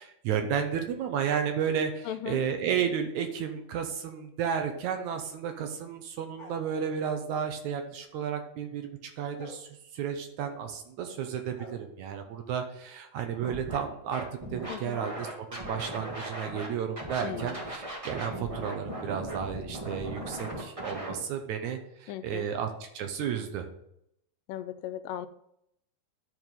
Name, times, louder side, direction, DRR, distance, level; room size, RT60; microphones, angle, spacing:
voice 1, 0.0-14.2 14.5-23.7, right 7 dB, 70° right, 5 dB, 2.1 m, -32 dB
voice 2, 2.1-2.4 14.7-15.0 17.2-17.6 22.1-22.5 24.5-25.3, left 11 dB, 85° left, 12 dB, 2.3 m, -37 dB
sound 1, 6.4-7.0 9.4-9.6 11.5-11.7, left 1 dB, 25° left, 1.1 m, -47 dB
Scratching (performance technique), 13.4-13.8 14.1-16.7 17.0-21.1, right 1 dB, 30° right, 0.5 m, -38 dB
11.0 x 4.6 x 5.3 m, 0.76 s
omnidirectional pair, 3.8 m